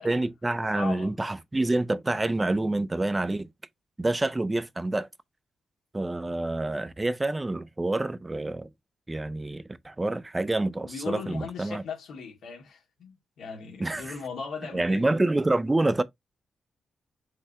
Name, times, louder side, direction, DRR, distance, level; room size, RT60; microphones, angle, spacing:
voice 1, 0.0-3.5 4.0-5.1 5.9-8.7 9.1-11.8 13.8-14.2 14.7-16.0, right 2 dB, 15° right, 0.4 m, -27 dB
voice 2, 0.7-1.1 10.8-15.1, left 5 dB, 75° left, 2.0 m, -38 dB
5.5 x 3.3 x 2.8 m
cardioid pair, 125°, 0 cm